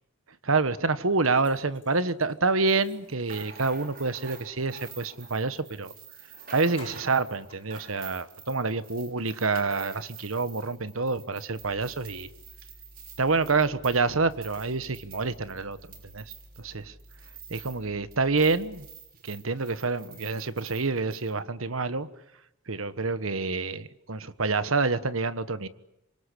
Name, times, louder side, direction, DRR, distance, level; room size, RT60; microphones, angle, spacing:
voice 1, 0.5-5.9 6.5-12.3 13.2-15.8 16.1-16.2 16.6-16.9 17.5-18.9 19.2-22.1 22.7-25.7, right 3 dB, 80° right, 13 dB, 1.4 m, -27 dB
sound 1, 1.2-5.3 6.0-6.1 6.4-8.4, left 4 dB, 25° left, 7.5 m, -56 dB
sound 2, 2.7-17.9 18.1-21.3, right 6 dB, 45° right, 6.5 m, -48 dB
sound 3, 11.6-18.9, equal, 10° left, 1.9 m, -53 dB
27.0 x 24.5 x 8.5 m, 0.84 s
head